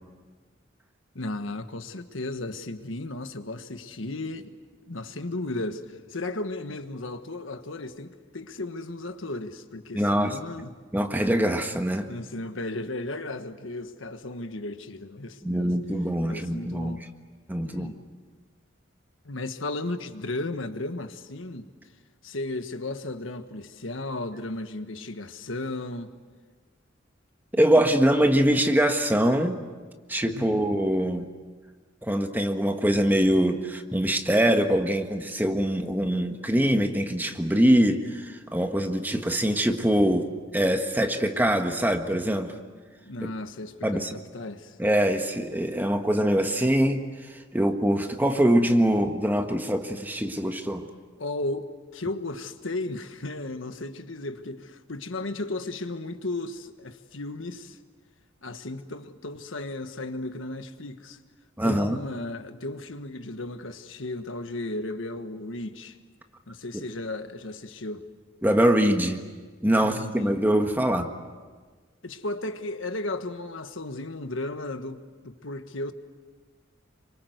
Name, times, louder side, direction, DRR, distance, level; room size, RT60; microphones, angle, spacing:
voice 1, 1.1-4.6 4.9-10.7 12.1-15.7 16.3-17.0 17.6-18.0 19.2-21.7 22.2-26.1 30.3-30.9 43.0-44.8 51.2-57.8 58.4-61.2 61.6-66.0 66.5-68.0 69.8-70.3 72.0-75.9, left 2 dB, 80° left, 1.5 m, -35 dB
voice 2, 9.9-10.3 10.9-12.1 15.4-17.0 17.5-17.9 27.5-29.6 30.1-31.3 32.0-42.6 43.8-44.2 44.8-47.0 47.5-50.9 61.6-62.0 68.4-69.2 69.6-71.1, equal, 10° right, 1.5 m, -23 dB
27.5 x 25.0 x 8.0 m
head